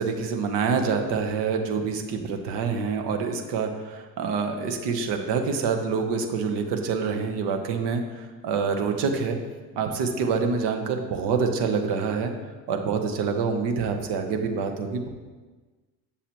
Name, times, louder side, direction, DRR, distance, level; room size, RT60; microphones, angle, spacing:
voice 1, 0.0-9.4 9.8-12.3 12.7-15.1, right 5 dB, 55° right, 5 dB, 1.1 m, -26 dB
7.1 x 7.0 x 3.0 m, 1.3 s
hypercardioid pair, 65°, 49 cm